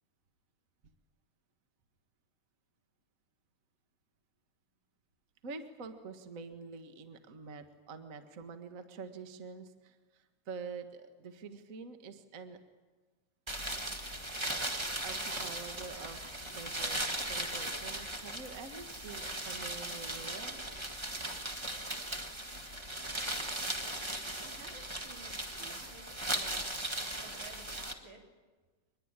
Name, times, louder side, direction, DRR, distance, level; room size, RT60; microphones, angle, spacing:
voice 1, 5.4-12.6 15.0-20.6, right 4 dB, 35° right, 7 dB, 1.5 m, -46 dB
sound 1, 13.5-27.9, right 1 dB, 20° right, 0.7 m, -38 dB
voice 2, 24.4-26.7 27.2-28.2, right 3 dB, 80° right, 1 dB, 5.2 m, -53 dB
24.5 x 21.0 x 9.0 m, 1.3 s
omnidirectional pair, 3.4 m